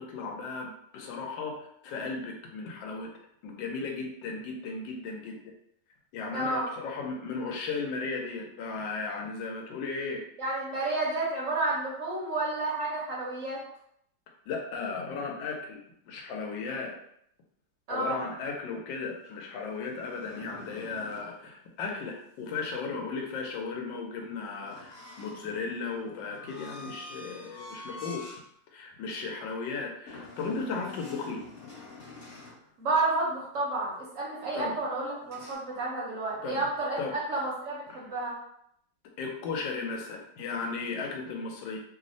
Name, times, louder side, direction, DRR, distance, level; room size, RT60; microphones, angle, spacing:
voice 1, 0.0-3.1 3.4-5.4 6.1-10.2 14.5-17.0 17.9-28.2 28.7-31.4 34.5-34.7 36.4-36.6 37.0-37.1 37.9-38.0 39.2-41.8, left 4 dB, 85° left, 1 dB, 1.3 m, -36 dB
voice 2, 6.3-6.7 10.4-13.6 17.9-18.2 32.8-38.3, right 2 dB, 60° right, -4 dB, 0.9 m, -30 dB
sound 1, 19.0-21.3 24.6-28.4 28.9-29.1 30.1-32.6 35.2-35.6, left 3 dB, 60° left, 1.3 m, -47 dB
3.2 x 2.0 x 2.5 m, 0.71 s
omnidirectional pair, 2.0 m